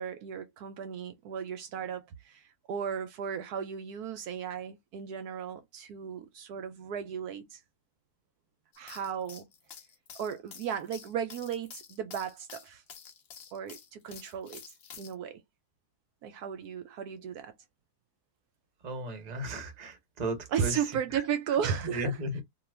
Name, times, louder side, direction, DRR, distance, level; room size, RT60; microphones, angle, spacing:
voice 1, 0.0-7.6 8.8-9.5 10.2-12.8 13.5-14.6 15.0-15.4 16.2-17.5 20.5-22.2, right 8 dB, 75° right, 1.1 m, -35 dB
sound 1, 8.7-15.1, left 7 dB, 55° left, 0.7 m, -49 dB
voice 2, 18.8-20.8 21.1-21.2 21.8-22.4, right 1 dB, 35° right, 0.8 m, -35 dB
2.7 x 2.3 x 3.1 m
omnidirectional pair, 1.8 m